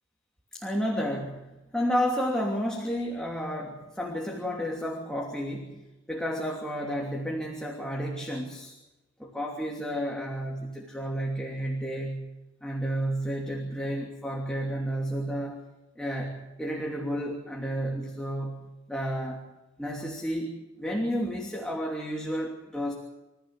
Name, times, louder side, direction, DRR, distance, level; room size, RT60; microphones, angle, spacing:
voice 1, 0.5-5.8 6.1-8.7 9.2-12.3 12.6-15.6 16.0-18.6 18.9-19.4 19.8-22.9, equal, 5° left, -1 dB, 2.9 m, -31 dB
28.0 x 15.5 x 7.5 m, 1.0 s
head